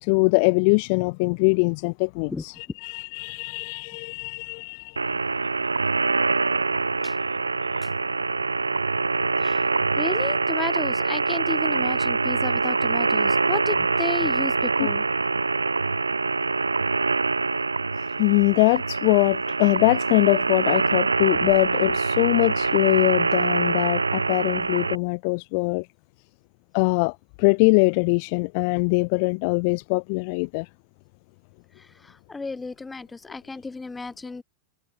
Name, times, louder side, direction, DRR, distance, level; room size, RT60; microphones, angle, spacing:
voice 1, 0.0-5.2 14.8-14.9 18.2-25.9 26.7-30.7, left 33 dB, 45° left, 0.4 m, -22 dB
sound 1, 5.0-25.0, right 4 dB, 80° right, 0.7 m, -24 dB
voice 2, 10.0-15.0 32.0-34.4, left 3 dB, 10° left, 3.0 m, -33 dB
figure-of-eight pair, 90°, 0 cm